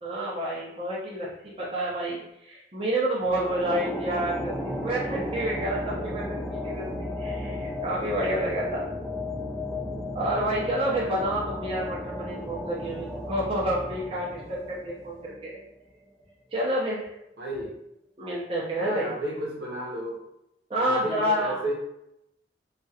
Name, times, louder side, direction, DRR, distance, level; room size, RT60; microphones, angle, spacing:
voice 1, 0.0-8.8 10.1-15.6 16.5-17.1 18.2-19.1 20.7-21.6, right 1 dB, 30° right, -6 dB, 0.7 m, -29 dB
sound 1, 3.2-15.8, left 1 dB, 5° right, 0.9 m, -34 dB
voice 2, 17.4-17.8 18.8-20.2 20.8-21.7, right 1 dB, 70° right, -3 dB, 0.9 m, -32 dB
3.0 x 2.4 x 2.7 m, 0.82 s
head